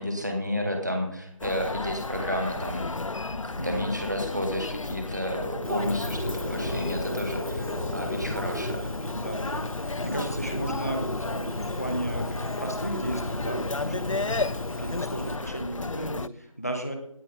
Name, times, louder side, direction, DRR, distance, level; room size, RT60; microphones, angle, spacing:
voice 1, 0.0-2.9 3.3-8.9 10.0-10.3 13.8-14.0, equal, 30° right, 3 dB, 2.2 m, -31 dB
Human voice, 1.4-16.3, left 3 dB, 65° left, 0.4 m, -34 dB
sound 1, 1.4-3.0 3.5-3.6 4.9-9.6, right 1 dB, 75° right, 3.7 m, -41 dB
voice 2, 3.6-4.0 9.1-14.3 14.8-17.0, right 1 dB, 30° left, 4 dB, 1.3 m, -34 dB
Bird, 5.6-15.4, left 1 dB, 85° left, 1.3 m, -35 dB
17.5 x 9.9 x 3.8 m, 0.74 s
figure-of-eight pair, 180°, 18 cm